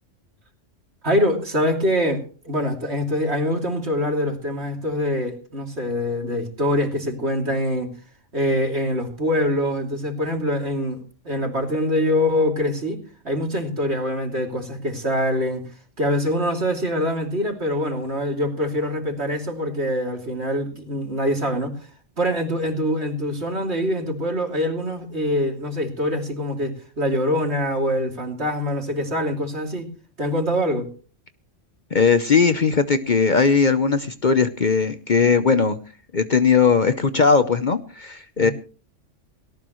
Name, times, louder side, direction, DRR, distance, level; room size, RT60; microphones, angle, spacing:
voice 1, 1.0-7.9 8.3-11.0 11.2-15.6 16.0-21.7 22.2-29.9 30.2-30.9 38.4-38.5, equal, 60° right, 3 dB, 3.2 m, -24 dB
voice 2, 31.9-35.8 36.1-38.5, left 5 dB, 45° left, 11 dB, 0.9 m, -19 dB
18.0 x 18.0 x 3.1 m, 0.38 s
omnidirectional pair, 1.3 m